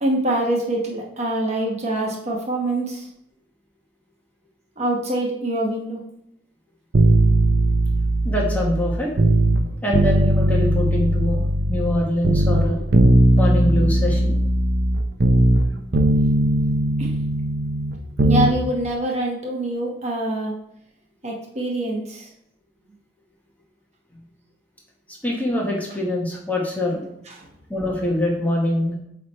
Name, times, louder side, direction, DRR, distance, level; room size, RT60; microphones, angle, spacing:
voice 1, 0.0-3.1 4.8-6.0 17.0-17.2 18.2-20.6 21.2-22.3 27.4-27.5, right 1 dB, 35° right, -1 dB, 1.0 m, -25 dB
sound 1, 6.9-9.6 9.9-12.0 12.2-15.7 15.9-18.5 18.8-18.9, right 1 dB, 60° right, 0.6 m, -18 dB
voice 2, 8.2-9.3 9.8-11.4 11.7-12.8 13.4-14.4 25.2-27.0 27.7-29.0, left 1 dB, 10° left, -2 dB, 1.4 m, -24 dB
8.1 x 3.3 x 4.3 m, 0.76 s
head